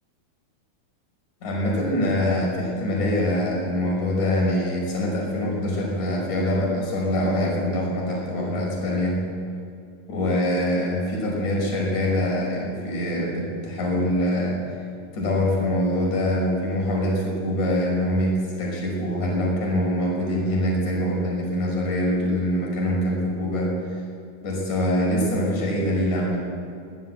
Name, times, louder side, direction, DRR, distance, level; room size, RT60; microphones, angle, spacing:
voice 1, 1.4-9.2 10.1-14.6 15.1-24.0 24.4-26.4, left 1 dB, 55° left, -2 dB, 7.1 m, -24 dB
23.0 x 18.0 x 7.9 m, 2.5 s
omnidirectional pair, 4.3 m